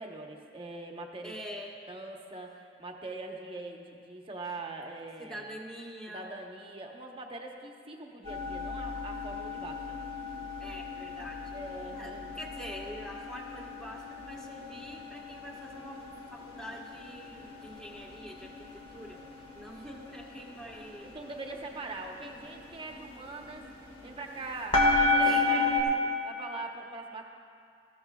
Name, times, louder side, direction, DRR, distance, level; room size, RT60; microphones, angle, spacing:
voice 1, 0.0-1.4 1.9-5.5 6.1-10.0 11.5-12.4 21.1-23.7 24.0-25.9 26.2-27.3, right 2 dB, 30° right, 1 dB, 1.0 m, -42 dB
voice 2, 1.2-1.8 5.2-6.3 10.6-11.6 11.9-16.0 16.3-19.2 19.5-21.1 25.2-26.1, equal, 5° left, -3 dB, 1.4 m, -44 dB
sound 1, 8.2-25.8, left 2 dB, 30° left, 1.5 m, -33 dB
19.5 x 14.5 x 2.3 m, 2.3 s
head